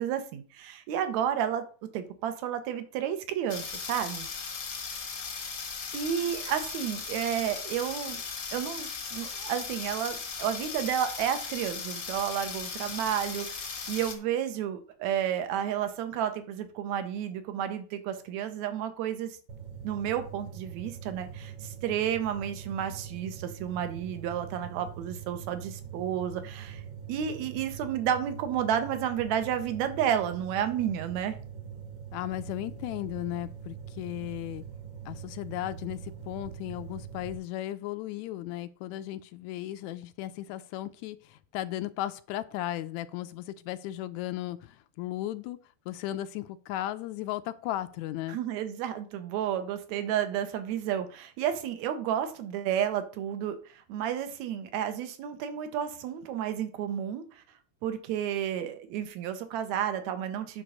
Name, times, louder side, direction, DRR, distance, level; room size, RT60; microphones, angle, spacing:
voice 1, 0.0-1.6 1.9-4.3 5.9-8.2 8.5-19.4 19.8-26.8 27.1-31.4 48.3-57.4 57.8-60.6, right 9 dB, 75° right, 9 dB, 2.3 m, -31 dB
sound 1, 3.5-14.2, left 5 dB, 50° left, 1.0 m, -37 dB
sound 2, 19.5-37.3, right 7 dB, 55° right, 1.9 m, -43 dB
voice 2, 32.1-34.6 35.1-45.6 45.9-48.4, left 14 dB, 80° left, 13 dB, 1.9 m, -36 dB
9.1 x 3.8 x 6.4 m, 0.40 s
omnidirectional pair, 3.3 m